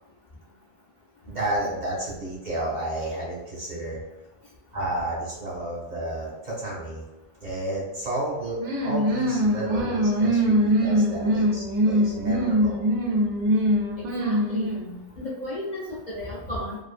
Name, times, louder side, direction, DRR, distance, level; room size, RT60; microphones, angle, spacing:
voice 1, 1.3-4.0 4.7-7.0 7.4-12.8, right 1 dB, 45° right, -5 dB, 0.8 m, -31 dB
sound 1, 8.6-15.0, equal, 90° right, 0.9 m, -23 dB
voice 2, 14.0-14.7 15.2-16.8, left 1 dB, 50° left, -6 dB, 0.5 m, -34 dB
2.6 x 2.5 x 2.4 m, 0.99 s
omnidirectional pair, 1.2 m